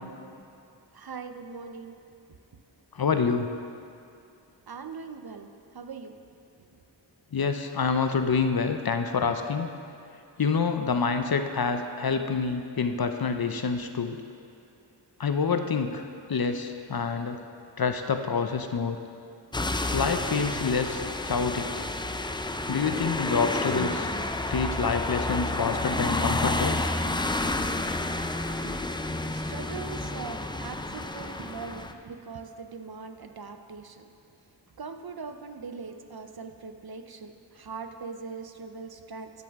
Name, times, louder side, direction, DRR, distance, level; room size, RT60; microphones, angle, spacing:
voice 1, 0.9-1.9 4.7-5.5 5.7-6.1 28.6-28.8 29.3-34.1 34.8-39.3, right 5 dB, 55° right, 7 dB, 0.6 m, -41 dB
voice 2, 2.9-3.5 7.3-9.7 10.4-14.2 15.2-16.0 16.3-17.4 17.8-19.0 19.9-21.9 22.7-24.1 24.5-26.8, left 5 dB, 55° left, 7 dB, 0.6 m, -27 dB
sound 1, 19.5-31.9, left 2 dB, 10° left, 0.3 m, -30 dB
13.0 x 6.9 x 3.5 m, 2.5 s
wide cardioid pair, 45°, 45 cm